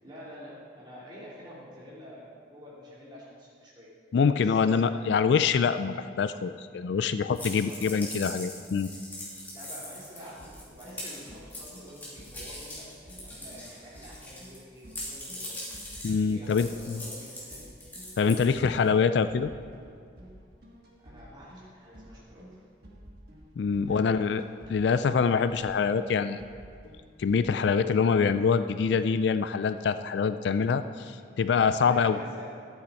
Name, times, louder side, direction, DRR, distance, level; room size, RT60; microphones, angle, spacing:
voice 1, 0.0-3.9 4.3-5.2 7.5-8.0 9.5-15.7 16.2-17.7 21.0-22.6 23.8-24.3 31.1-31.2 31.5-32.5, equal, 25° right, -7 dB, 2.8 m, -48 dB
voice 2, 4.1-8.9 16.0-17.0 18.2-19.5 23.6-24.4 24.7-26.4 27.2-32.2, left 5 dB, 60° left, 11 dB, 0.3 m, -25 dB
sound 1, 7.3-14.6 14.9-18.9, left 1 dB, 10° left, 2.4 m, -41 dB
sound 2, 10.4-28.1, equal, 55° right, 1.5 m, -51 dB
13.0 x 8.9 x 4.2 m, 2.3 s
head